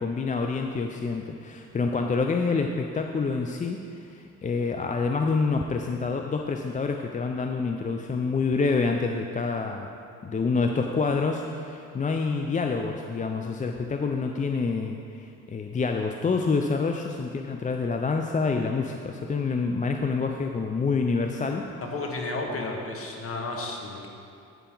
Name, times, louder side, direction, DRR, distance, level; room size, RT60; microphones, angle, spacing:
voice 1, 0.0-9.9 10.2-21.7, left 4 dB, 25° left, 4 dB, 0.5 m, -27 dB
voice 2, 21.8-24.1, left 2 dB, 50° left, 1 dB, 1.6 m, -32 dB
10.5 x 8.1 x 3.9 m, 2.5 s
cardioid pair, 90°, 30 cm